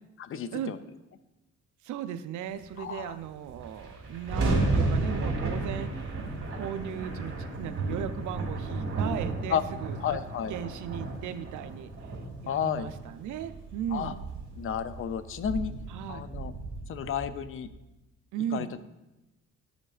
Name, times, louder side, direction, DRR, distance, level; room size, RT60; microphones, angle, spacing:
voice 1, 0.2-0.8 2.8-3.1 9.5-9.6 10.0-10.5 12.5-12.9 13.9-14.1 14.6-15.7 16.1-16.5 16.9-17.7 18.5-18.8, left 8 dB, 45° left, 13 dB, 0.5 m, -32 dB
voice 2, 1.8-6.2 6.5-10.2 10.5-11.9 12.4-14.2 15.9-16.2 18.3-18.7, right 9 dB, 75° right, 11 dB, 0.5 m, -37 dB
sound 1, 3.1-3.2 3.4-17.8, right 2 dB, 40° right, 1.9 m, -33 dB
10.5 x 5.2 x 2.4 m, 1.0 s
cardioid pair, 90°, 30 cm